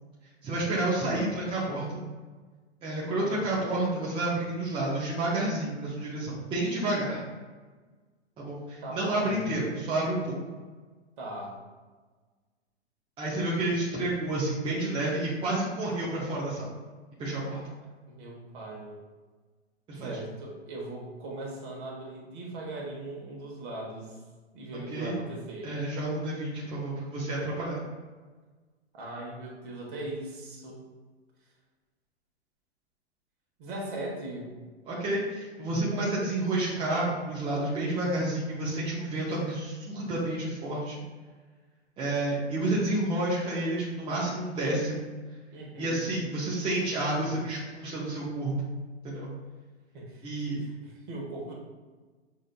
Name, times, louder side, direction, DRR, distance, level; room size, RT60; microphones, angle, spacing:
voice 1, 0.4-2.0 2.8-7.2 8.4-10.4 13.2-16.7 17.2-17.6 19.9-20.2 24.9-25.1 25.6-27.8 34.9-41.0 42.0-45.1 45.8-48.5 49.0-49.3 50.2-50.6, right 2 dB, 15° right, -6 dB, 0.7 m, -30 dB
voice 2, 8.8-9.4 11.2-11.6 18.1-19.0 20.0-24.2 24.5-25.7 28.9-30.8 33.6-34.5 45.5-46.0 49.9-50.2 50.5-51.5, right 1 dB, 50° right, -2 dB, 1.3 m, -39 dB
6.2 x 2.5 x 2.2 m, 1.4 s
hypercardioid pair, 120°, 34 cm